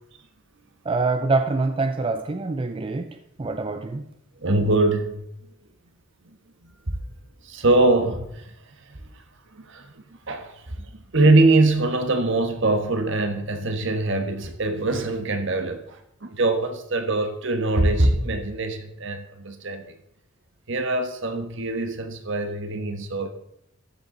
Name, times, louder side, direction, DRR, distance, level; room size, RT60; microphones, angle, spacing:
voice 1, 0.9-3.1 3.4-4.0, right 3 dB, 25° right, 0.4 m, -25 dB
voice 2, 4.4-5.2 6.6-6.9 7.4-9.2 9.5-19.9 20.7-23.3, right 2 dB, 65° right, 1.3 m, -23 dB
13.5 x 8.0 x 3.9 m
head